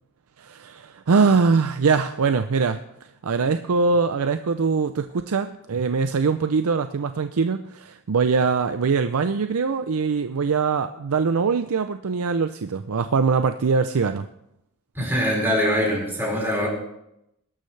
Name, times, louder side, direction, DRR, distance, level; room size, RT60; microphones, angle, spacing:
voice 1, 0.4-2.8 3.2-14.3, right 5 dB, 70° right, 9 dB, 0.5 m, -22 dB
voice 2, 14.9-16.7, equal, 10° right, -3 dB, 5.0 m, -23 dB
21.0 x 12.0 x 3.3 m, 0.82 s
head